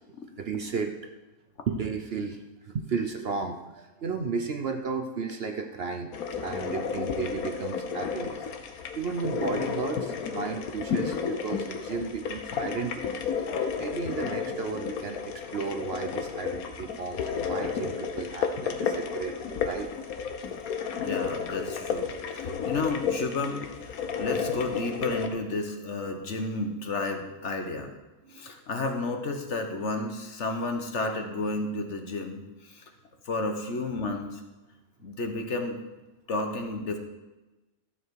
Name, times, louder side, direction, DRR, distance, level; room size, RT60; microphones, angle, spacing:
voice 1, 0.4-0.9 1.7-2.4 2.6-6.1 6.4-8.5 9.0-13.2 13.5-19.9 22.4-22.6 24.7-24.8 28.2-28.4, right 5 dB, 55° right, 4 dB, 0.8 m, -34 dB
sound 1, 6.1-25.3, left 6 dB, 85° left, 1.4 m, -32 dB
voice 2, 21.0-27.9 28.3-32.8 33.2-34.4 35.0-35.8 36.3-37.0, left 2 dB, 55° left, 4 dB, 1.4 m, -32 dB
13.5 x 7.2 x 4.7 m, 1.1 s
omnidirectional pair, 1.5 m